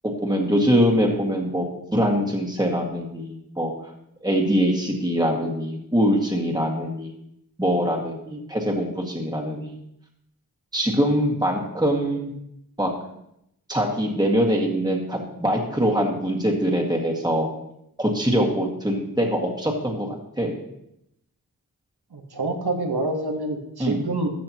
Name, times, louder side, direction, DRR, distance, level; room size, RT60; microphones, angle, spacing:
voice 1, 0.2-1.7 1.9-3.7 4.2-7.1 7.6-9.8 10.7-12.4 12.8-12.9 13.7-17.5 18.0-20.6 23.8-24.0, equal, 10° right, 0 dB, 1.9 m, -23 dB
voice 2, 22.1-24.3, right 2 dB, 90° right, 4 dB, 1.3 m, -27 dB
13.5 x 7.5 x 2.9 m, 0.78 s
wide cardioid pair, 45°, 38 cm